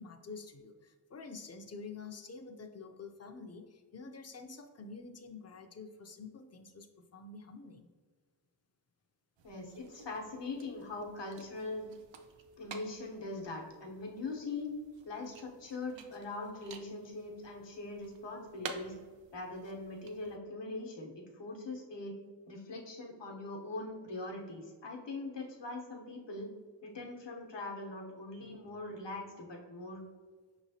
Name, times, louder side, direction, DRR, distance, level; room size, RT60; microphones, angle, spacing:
voice 1, 0.0-7.9, left 4 dB, 35° left, 6 dB, 0.5 m, -48 dB
voice 2, 9.4-11.9 12.6-14.7 15.0-18.9 19.3-22.2 22.5-26.5 26.8-30.0, left 2 dB, 75° left, 0 dB, 1.0 m, -42 dB
sound 1, 9.4-20.4, right 4 dB, 85° right, 0.5 m, -52 dB
5.5 x 3.0 x 2.7 m, 1.5 s
wide cardioid pair, 50°, 44 cm